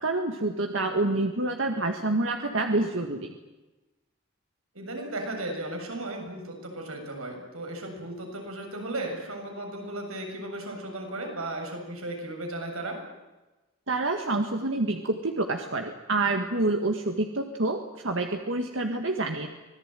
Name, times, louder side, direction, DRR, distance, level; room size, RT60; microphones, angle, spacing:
voice 1, 0.0-3.3 13.9-19.5, right 2 dB, 65° right, 4 dB, 1.8 m, -27 dB
voice 2, 4.7-13.0, right 1 dB, 85° right, 3 dB, 7.3 m, -35 dB
25.5 x 19.5 x 9.1 m, 1.1 s
head